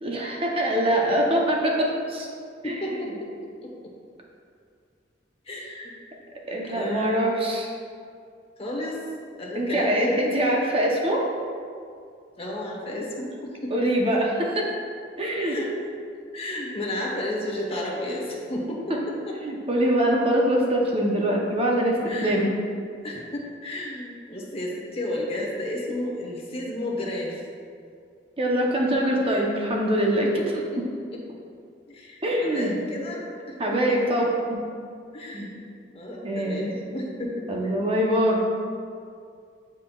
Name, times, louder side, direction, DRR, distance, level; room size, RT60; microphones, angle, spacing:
voice 1, 0.0-2.3 2.6-2.8 6.5-7.7 9.5-11.3 13.7-14.8 15.2-15.6 18.9-19.0 19.4-22.5 28.4-30.3 32.2-32.8 33.6-34.3 35.3-35.5 36.2-36.7 37.2-38.4, right 1 dB, 30° right, -1 dB, 0.8 m, -23 dB
voice 2, 2.6-3.3 3.6-3.9 5.5-5.9 6.6-7.2 8.6-9.0 9.4-10.4 12.4-13.7 15.4-15.7 16.3-18.9 19.3-19.4 22.0-22.5 23.0-27.4 30.2-30.8 31.1-31.2 31.9-33.6 33.9-34.0 35.1-35.6 35.9-37.8, left 1 dB, 35° left, -2 dB, 1.1 m, -32 dB
9.3 x 4.4 x 2.4 m, 2.3 s
head